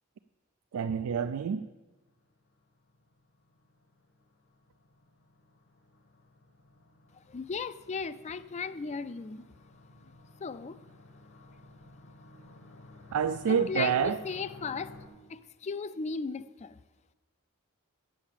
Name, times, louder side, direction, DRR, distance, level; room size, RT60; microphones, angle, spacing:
voice 1, 0.7-1.7 13.1-14.2, right 7 dB, 85° right, 0.4 m, -28 dB
sound 1, 1.9-15.1, left 2 dB, 70° left, 1.5 m, -55 dB
voice 2, 7.3-9.4 10.4-10.8 13.5-15.0 15.3-16.8, left 5 dB, 30° left, 0.4 m, -36 dB
8.5 x 7.3 x 7.3 m
head